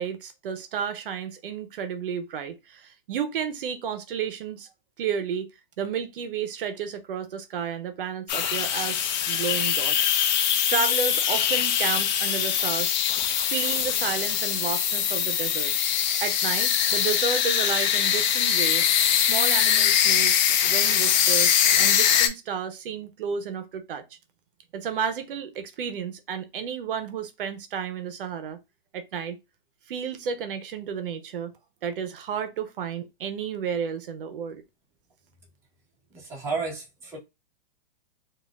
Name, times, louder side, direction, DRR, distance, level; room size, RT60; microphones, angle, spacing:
voice 1, 0.0-4.7 5.0-5.5 5.8-10.2 10.7-12.9 13.5-15.8 16.2-18.8 19.1-20.4 20.6-24.0 24.7-28.6 28.9-29.4 29.9-31.5 31.8-34.6, right 7 dB, 70° right, 0.7 m, -32 dB
sound 1, 8.3-22.3, left 9 dB, 50° left, 0.7 m, -23 dB
voice 2, 36.1-37.2, right 4 dB, 10° right, 1.0 m, -32 dB
4.0 x 2.4 x 2.3 m
hypercardioid pair, 160°, 29 cm